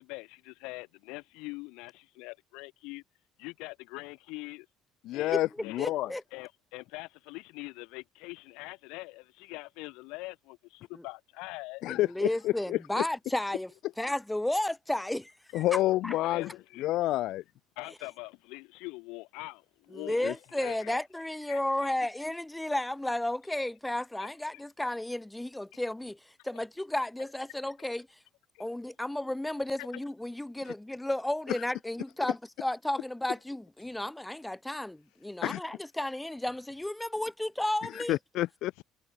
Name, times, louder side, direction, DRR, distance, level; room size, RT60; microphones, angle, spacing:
voice 1, 0.0-3.0 3.4-4.7 5.1-5.4 5.6-5.8 6.3-11.8 16.2-17.0 17.8-21.0 21.5-22.1 24.2-24.6 26.4-26.6 27.2-27.3 27.6-27.7 28.5-28.7 29.8-29.9 33.9-34.0 38.8-38.9, left 25 dB, 90° left, 3.0 m, -43 dB
voice 2, 5.1-6.1 11.8-12.8 15.5-16.5 16.8-17.4 20.2-20.3 30.7-30.8 31.5-31.6 35.4-35.6 37.9-38.7, left 15 dB, 70° left, 0.9 m, -29 dB
voice 3, 5.8-6.2 12.1-15.8 16.0-16.1 19.9-28.1 28.6-38.2, left 1 dB, 5° left, 2.0 m, -33 dB
cardioid pair, 105°, 0 cm